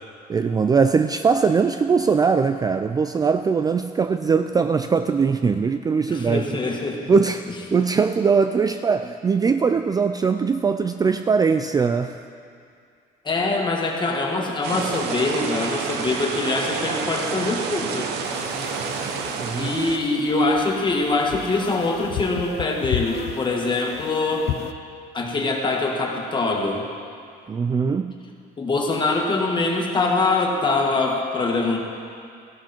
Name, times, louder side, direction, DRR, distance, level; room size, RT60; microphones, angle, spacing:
voice 1, 0.3-6.4 7.1-12.2 19.4-19.7 27.5-28.2, right 5 dB, 20° right, 8 dB, 0.4 m, -21 dB
voice 2, 6.1-7.1 13.2-18.1 19.0-19.1 19.6-24.5 25.1-26.8 28.6-31.8, left 3 dB, 25° left, 1 dB, 1.9 m, -23 dB
sound 1, 14.6-20.0, right 5 dB, 85° right, 1.1 m, -29 dB
sound 2, 18.2-24.7, left 12 dB, 70° left, 0.6 m, -34 dB
15.0 x 11.5 x 4.5 m, 2.3 s
cardioid pair, 110°, 17 cm